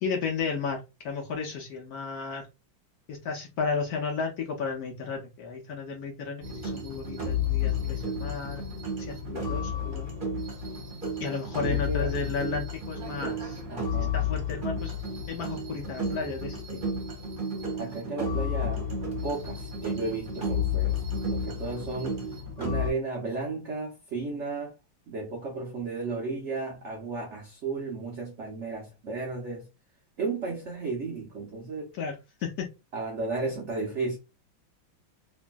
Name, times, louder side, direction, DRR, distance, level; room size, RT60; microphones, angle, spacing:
voice 1, 0.0-2.5 3.1-8.6 9.0-10.2 11.2-13.6 14.0-14.9 15.3-16.8 31.9-32.7, left 5 dB, 70° left, 0.9 m, -33 dB
sound 1, 6.4-22.9, left 4 dB, 30° right, 1.0 m, -31 dB
voice 2, 11.6-12.1 13.7-14.2 17.7-18.9 19.2-21.0 21.3-22.3 22.6-24.8 25.1-29.7 30.2-31.9 32.9-34.2, right 3 dB, 80° right, 0.6 m, -34 dB
3.0 x 2.6 x 2.2 m
omnidirectional pair, 2.1 m